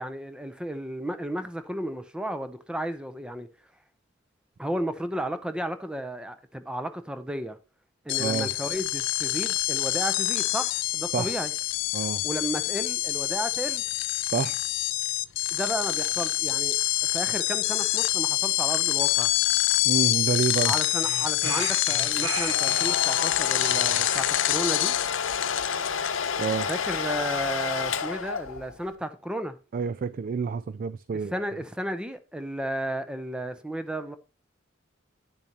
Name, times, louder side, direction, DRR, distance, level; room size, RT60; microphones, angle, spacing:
voice 1, 0.0-3.5 4.6-7.6 8.0-11.5 12.2-13.8 15.5-19.3 20.6-25.0 26.7-29.6 31.3-34.2, equal, 5° right, 0.6 m, -33 dB
sound 1, 8.1-27.2, left 17 dB, 65° left, 0.3 m, -26 dB
voice 2, 8.2-8.5 11.1-11.3 11.9-12.2 14.3-14.6 19.8-20.7 26.4-26.7 29.7-31.4, right 6 dB, 45° right, 0.3 m, -28 dB
sound 2, 20.8-23.0 23.6-24.9, right 4 dB, 90° right, 1.3 m, -37 dB
Domestic sounds home sounds, 22.1-28.8, left 6 dB, 80° left, 0.8 m, -30 dB
10.0 x 6.9 x 2.9 m
head